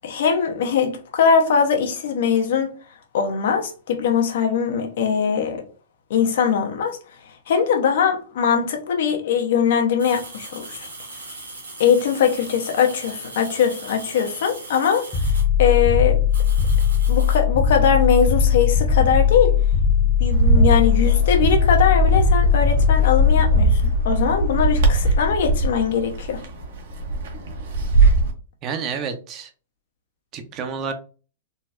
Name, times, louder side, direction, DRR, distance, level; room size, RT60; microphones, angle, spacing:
voice 1, 0.0-2.7 3.1-5.6 6.1-7.0 7.5-10.9 11.8-15.1 15.6-16.2 17.1-19.5 20.2-26.4, left 7 dB, 65° left, 0.8 m, -21 dB
sound 1, 10.0-15.5 16.3-17.4, right 2 dB, 90° right, 1.1 m, -39 dB
sound 2, 15.1-24.2, left 8 dB, 25° left, 0.5 m, -19 dB
Bird, 20.3-28.3, right 3 dB, 65° right, 0.8 m, -20 dB
voice 2, 28.6-29.5 30.3-30.9, right 6 dB, 35° right, 0.6 m, -29 dB
3.9 x 2.0 x 2.4 m
hypercardioid pair, 110°, 0 cm